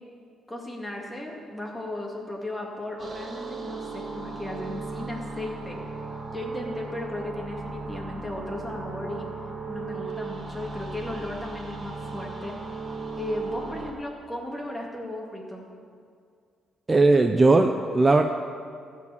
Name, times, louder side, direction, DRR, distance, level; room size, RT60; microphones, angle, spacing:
voice 1, 0.5-5.8 6.3-9.3 9.7-12.6 13.2-15.7, left 1 dB, 10° left, -1 dB, 2.3 m, -35 dB
sound 1, 3.0-13.9, right 3 dB, 40° right, 1.6 m, -37 dB
voice 2, 16.9-18.2, right 3 dB, 25° right, 5 dB, 0.6 m, -18 dB
14.0 x 4.8 x 8.6 m, 2.2 s
cardioid pair, 90°, 0 cm